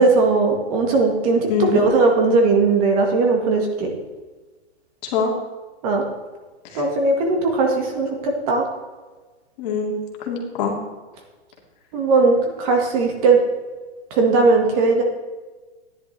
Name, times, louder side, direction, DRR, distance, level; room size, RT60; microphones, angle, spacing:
voice 1, 0.0-1.5 1.7-3.9 5.8-6.0 6.7-8.7 11.9-13.4 14.1-15.0, right 3 dB, 35° right, 2 dB, 1.7 m, -18 dB
voice 2, 1.5-1.8 5.0-5.3 6.7-6.8 9.6-10.8, left 5 dB, 35° left, 0 dB, 2.4 m, -24 dB
14.0 x 10.5 x 3.3 m, 1.3 s
hypercardioid pair, 155°, 34 cm